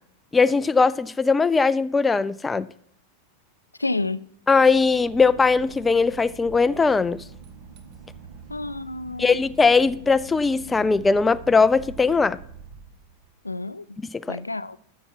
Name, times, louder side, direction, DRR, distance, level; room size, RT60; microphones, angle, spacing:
voice 1, 0.3-2.7 4.5-7.2 9.2-12.4 14.1-14.4, left 4 dB, 15° left, 0.4 m, -20 dB
voice 2, 3.8-4.2 8.5-9.4 13.4-13.8 14.3-14.8, left 2 dB, 80° left, 0.4 m, -29 dB
Boat Water vehicle / Engine, 4.6-13.5, right 6 dB, 45° right, 1.3 m, -45 dB
13.0 x 7.2 x 4.6 m
figure-of-eight pair, 90°, 0 cm